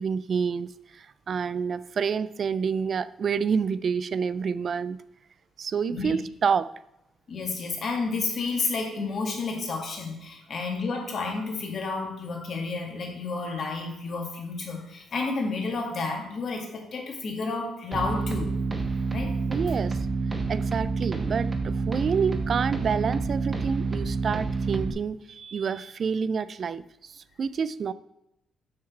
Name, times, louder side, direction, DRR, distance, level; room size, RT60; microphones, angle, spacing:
voice 1, 0.0-5.0 5.6-6.7 19.5-20.0 20.5-27.9, right 6 dB, 50° right, 16 dB, 0.3 m, -28 dB
voice 2, 7.3-18.6 19.1-19.3, left 3 dB, 50° left, 1 dB, 2.1 m, -31 dB
sound 1, 17.9-24.9, right 4 dB, 25° right, 1.1 m, -28 dB
6.3 x 5.8 x 4.5 m, 0.84 s
cardioid pair, 90°, 0 cm